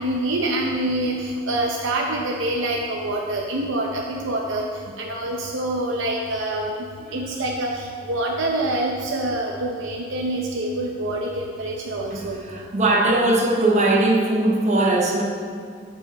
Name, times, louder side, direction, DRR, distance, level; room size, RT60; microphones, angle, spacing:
voice 1, 0.0-4.7 5.0-12.4, right 1 dB, 70° right, 0 dB, 0.7 m, -26 dB
voice 2, 12.1-15.2, right 2 dB, 35° right, -1 dB, 1.1 m, -20 dB
14.0 x 5.2 x 4.1 m, 2.2 s
head